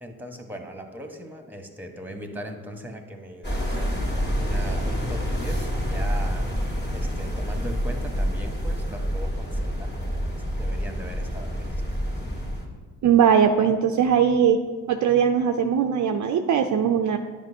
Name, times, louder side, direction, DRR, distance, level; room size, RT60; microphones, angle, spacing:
voice 1, 0.0-4.0 4.4-11.8, right 1 dB, 5° right, 4 dB, 1.1 m, -39 dB
sound 1, 3.4-12.7, equal, 25° left, 1.9 m, -27 dB
voice 2, 13.0-14.6 14.9-17.2, right 8 dB, 45° right, 6 dB, 0.5 m, -20 dB
9.5 x 5.1 x 2.7 m, 1.4 s
hypercardioid pair, 45°, 40 cm